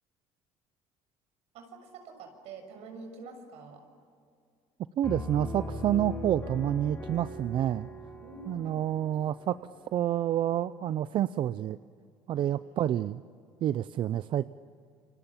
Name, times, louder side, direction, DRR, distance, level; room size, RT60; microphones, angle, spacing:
voice 1, 1.5-3.9 8.2-8.8 12.3-12.5, right 3 dB, 70° right, 5 dB, 6.7 m, -46 dB
Piano, 5.0-10.6, left 2 dB, 15° left, 6.8 m, -41 dB
voice 2, 5.0-7.9 8.5-9.6 9.9-11.8 12.3-13.2 13.6-14.5, right 11 dB, 45° right, 14 dB, 0.6 m, -28 dB
29.0 x 26.5 x 7.4 m, 2.3 s
cardioid pair, 135°, 11 cm